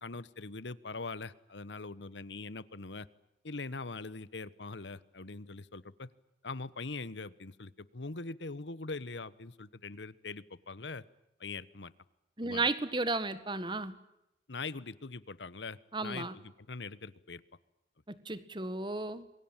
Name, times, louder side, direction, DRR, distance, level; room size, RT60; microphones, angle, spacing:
voice 1, 0.0-3.1 3.4-6.1 6.4-11.0 11.4-11.9 12.4-12.7 14.5-17.4, left 3 dB, 85° left, 17 dB, 1.2 m, -42 dB
voice 2, 12.4-13.9 15.9-16.3 18.1-19.3, right 3 dB, 25° right, 13 dB, 1.6 m, -34 dB
28.0 x 23.0 x 9.0 m, 0.87 s
head